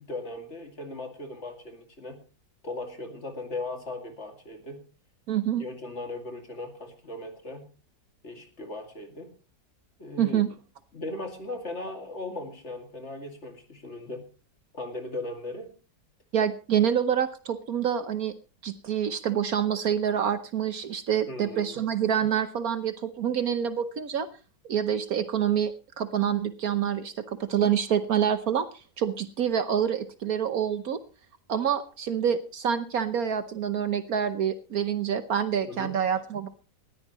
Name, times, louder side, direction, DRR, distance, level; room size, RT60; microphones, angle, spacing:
voice 1, 0.0-2.2 2.6-4.8 5.6-7.6 8.2-9.3 10.0-10.4 10.9-14.2 14.7-15.7 21.3-21.8 35.7-35.9, left 2 dB, 40° left, 5 dB, 2.6 m, -38 dB
voice 2, 5.3-5.6 10.2-10.5 16.3-18.3 18.6-24.3 24.7-28.7 29.0-31.0 31.5-36.5, right 8 dB, 60° right, 11 dB, 1.3 m, -27 dB
19.5 x 14.0 x 3.0 m, 0.33 s
omnidirectional pair, 1.9 m